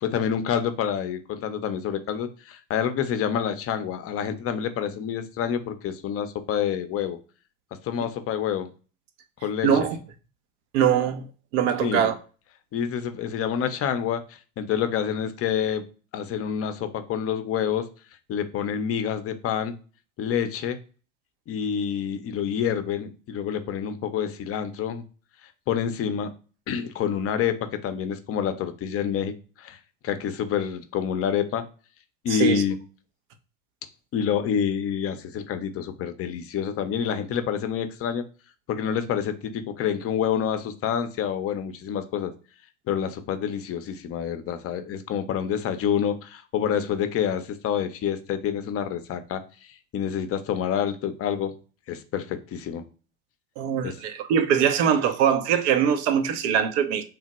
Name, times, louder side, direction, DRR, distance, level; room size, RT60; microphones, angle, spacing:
voice 1, 0.0-7.2 7.8-8.7 9.4-9.7 11.8-12.1 12.7-14.2 14.6-15.8 16.1-17.9 18.3-19.8 20.2-20.8 21.5-25.0 25.7-26.3 26.7-29.3 29.6-29.8 30.0-31.7 32.2-32.8 34.1-38.2 38.7-42.3 42.9-49.4 49.9-51.5 51.9-52.8 53.8-54.0, left 8 dB, 35° left, 0.6 m, -27 dB
voice 2, 9.6-10.0 10.7-11.2 11.5-12.1 32.3-32.6 53.6-57.0, right 8 dB, 65° right, 0.7 m, -22 dB
3.3 x 2.1 x 3.0 m
hypercardioid pair, 70°, 39 cm